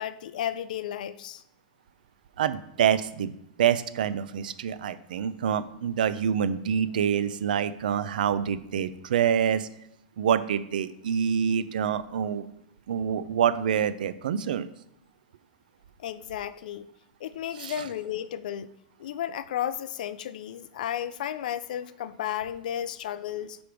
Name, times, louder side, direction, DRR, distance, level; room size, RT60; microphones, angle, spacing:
voice 1, 0.0-1.4 16.0-16.9 17.2-18.7 19.0-23.6, left 10 dB, 70° left, 14 dB, 0.5 m, -33 dB
voice 2, 2.4-3.3 3.6-9.7 10.2-12.4 12.9-14.7 17.6-17.7, right 8 dB, 85° right, 14 dB, 0.5 m, -26 dB
5.1 x 5.1 x 6.0 m, 0.81 s
supercardioid pair, 160°, 5 cm